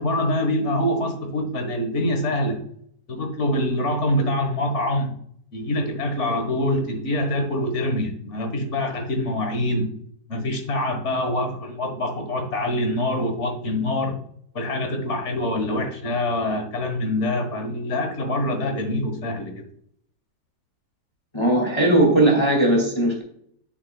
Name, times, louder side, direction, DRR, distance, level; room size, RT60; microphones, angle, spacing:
voice 1, 0.0-2.6 3.1-5.1 5.5-9.9 10.3-14.2 14.5-19.6, left 1 dB, 45° left, 5 dB, 1.5 m, -25 dB
voice 2, 21.3-23.2, right 1 dB, 15° left, 0 dB, 2.0 m, -18 dB
8.6 x 7.1 x 2.3 m, 0.67 s
omnidirectional pair, 2.0 m